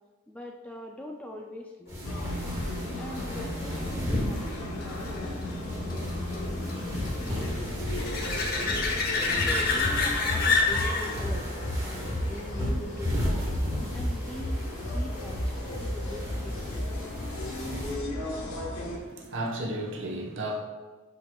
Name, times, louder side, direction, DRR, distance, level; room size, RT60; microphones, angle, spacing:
voice 1, 0.3-2.0 3.0-8.8 9.4-11.5 11.8-13.5 13.9-15.5 15.8-16.9, left 1 dB, 5° left, 1 dB, 0.4 m, -43 dB
sound 1, 1.9-17.9, equal, 15° right, 1.4 m, -36 dB
sound 2, 2.0-19.0, left 1 dB, 85° left, 1.3 m, -34 dB
sound 3, 2.3-13.6 19.2-19.3, left 4 dB, 40° left, 0.9 m, -31 dB
voice 2, 18.7-20.6, right 1 dB, 55° right, 0 dB, 1.0 m, -34 dB
11.0 x 4.5 x 2.3 m, 1.3 s
head